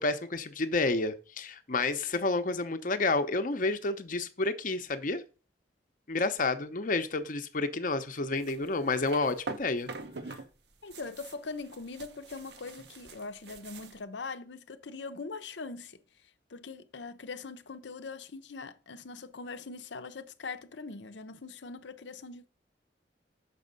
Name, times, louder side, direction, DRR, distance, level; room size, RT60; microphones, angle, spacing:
voice 1, 0.0-5.2 6.1-9.9, left 3 dB, 50° left, 0.8 m, -30 dB
sound 1, 8.4-10.5 10.7-14.0, right 3 dB, 70° right, 0.8 m, -44 dB
voice 2, 10.8-16.0 16.5-22.5, left 4 dB, 85° left, 0.7 m, -42 dB
6.9 x 5.4 x 5.2 m
head